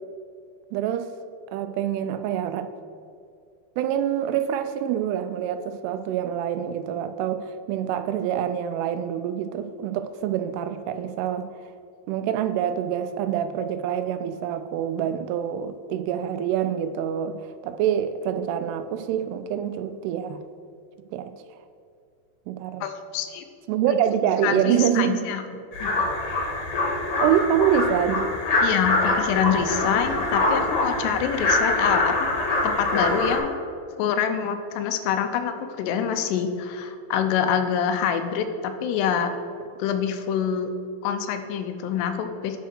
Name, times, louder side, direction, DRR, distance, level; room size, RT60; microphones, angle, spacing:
voice 1, 0.7-1.1 1.5-2.7 3.8-11.5 12.1-20.4 21.1-21.3 22.5-22.9 23.7-25.2 27.2-28.3 31.1-31.2, right 9 dB, 85° right, 10 dB, 2.6 m, -26 dB
voice 2, 22.8-23.4 24.4-25.4 25.8-26.1 28.6-32.3 32.6-33.6 34.0-39.3 39.8-40.7 41.0-42.6, left 8 dB, 90° left, 8 dB, 2.8 m, -26 dB
sound 1, 25.7-33.4, left 2 dB, 55° left, 1.6 m, -24 dB
9.2 x 4.6 x 6.0 m, 2.4 s
omnidirectional pair, 4.7 m